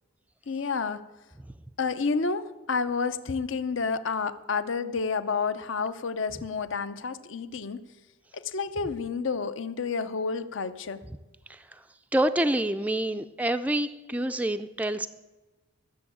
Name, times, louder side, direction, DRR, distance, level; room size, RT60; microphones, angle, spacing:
voice 1, 0.5-1.0 1.8-7.8 8.3-11.0, left 4 dB, 65° left, 0.6 m, -30 dB
voice 2, 12.1-15.1, right 1 dB, 5° right, 0.3 m, -27 dB
13.5 x 7.0 x 8.6 m
head